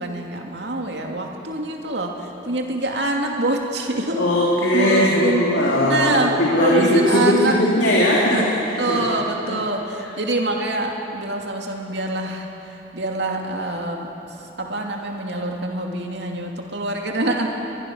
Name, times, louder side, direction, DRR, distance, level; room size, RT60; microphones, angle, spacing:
voice 1, 0.0-4.3 4.7-5.4 5.8-7.6 8.3-8.4 8.8-12.5 12.9-14.1 14.6-17.5, right 2 dB, 70° right, 1 dB, 2.6 m, -25 dB
voice 2, 4.2-9.1 9.4-9.6 10.0-10.1, left 1 dB, 85° left, -5 dB, 3.3 m, -19 dB
22.5 x 22.5 x 6.4 m, 2.9 s
head